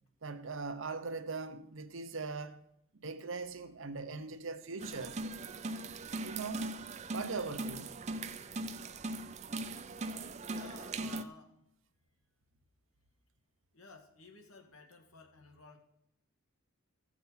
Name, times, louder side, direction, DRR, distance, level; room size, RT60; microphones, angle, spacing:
voice 1, 0.2-2.6 3.0-5.2 6.2-6.7 7.1-7.9, right 4 dB, 65° right, 0.8 m, -40 dB
sound 1, 4.8-11.2, right 2 dB, 30° right, 0.5 m, -40 dB
voice 2, 10.5-11.6 13.7-15.8, left 3 dB, 85° left, 2.1 m, -54 dB
15.5 x 6.1 x 5.6 m
head